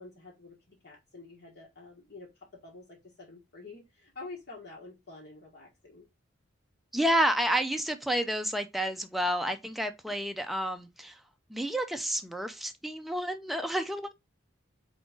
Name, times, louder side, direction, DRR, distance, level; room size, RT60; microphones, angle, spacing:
voice 1, 0.0-2.3 2.6-6.1, left 3 dB, 55° left, 1.3 m, -48 dB
voice 2, 6.9-11.2 11.5-14.1, equal, ahead, 0.4 m, -30 dB
3.9 x 3.7 x 3.6 m
head